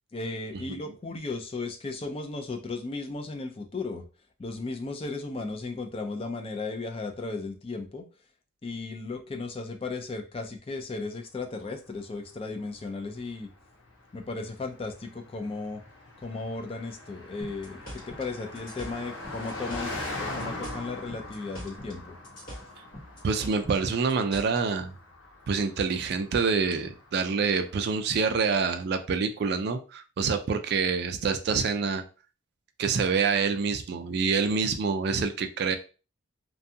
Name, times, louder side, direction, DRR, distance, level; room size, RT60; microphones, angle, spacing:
voice 1, 0.1-4.0 4.4-8.1 8.6-13.5 14.1-15.8 16.2-22.2, left 3 dB, 30° left, 5 dB, 0.4 m, -35 dB
Car passing by, 11.8-28.3, left 2 dB, 80° left, 0.9 m, -42 dB
sound 1, 17.4-20.1 20.4-22.0 22.2-24.6, equal, 45° left, 1.2 m, -43 dB
voice 2, 23.2-24.9 25.5-32.0 32.8-35.8, right 5 dB, 55° right, 8 dB, 0.3 m, -26 dB
2.6 x 2.3 x 2.6 m, 0.34 s
head